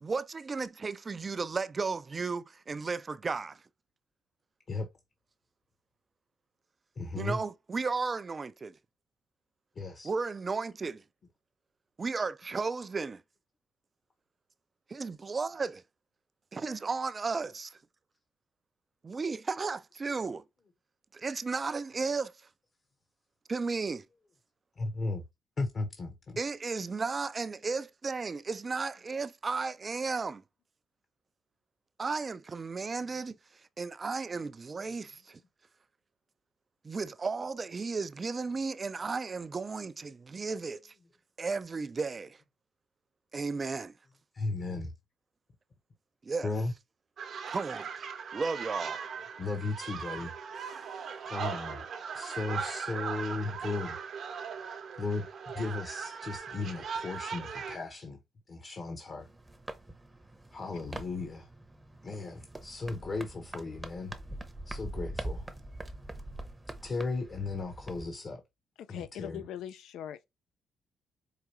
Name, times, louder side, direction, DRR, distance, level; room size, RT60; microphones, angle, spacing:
voice 1, 0.0-3.6 7.2-8.7 10.0-11.0 12.0-13.2 14.9-15.8 16.5-17.7 19.0-20.4 21.1-22.3 23.5-24.0 26.4-30.4 32.0-33.3 33.8-35.4 36.8-40.9 41.4-42.4 43.3-43.9 46.2-46.5 47.5-47.9 48.3-49.0 50.6-50.9, right 4 dB, 35° right, 0.3 m, -34 dB
voice 2, 7.0-7.4 9.8-10.1 24.8-25.2 25.6-26.4 44.3-44.9 46.4-46.7 49.4-50.3 51.2-51.8 52.1-54.0 55.0-55.3 55.5-58.2 58.5-59.3 60.5-61.5 62.0-64.1 64.7-65.5 66.8-68.4 68.9-69.4, left 3 dB, 40° left, 0.9 m, -36 dB
sound 1, 47.2-57.8, right 6 dB, 60° right, 0.8 m, -39 dB
sound 2, 59.2-68.1, right 1 dB, 10° right, 0.7 m, -43 dB
voice 3, 68.8-70.2, left 10 dB, 80° left, 0.4 m, -41 dB
4.8 x 2.3 x 3.0 m
cardioid pair, 90°, 0 cm